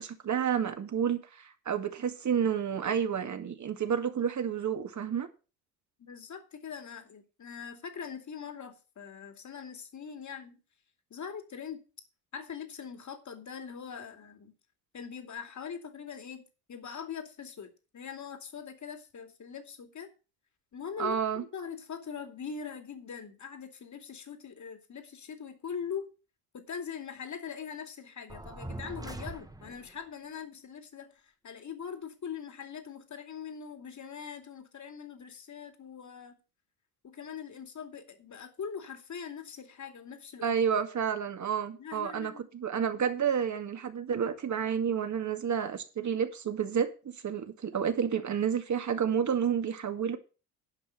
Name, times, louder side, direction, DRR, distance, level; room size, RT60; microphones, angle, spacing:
voice 1, 0.0-5.3 21.0-21.4 40.4-46.9 47.2-50.2, right 7 dB, 40° right, 2.2 m, -30 dB
voice 2, 6.0-10.6 11.1-11.8 12.3-14.5 14.9-20.1 20.7-26.1 26.5-36.3 37.0-40.6 41.8-42.5, left 7 dB, 40° left, 2.6 m, -42 dB
sound 1, 28.3-30.0, right 1 dB, 10° right, 1.2 m, -42 dB
11.0 x 5.7 x 7.4 m
hypercardioid pair, 70°, 44 cm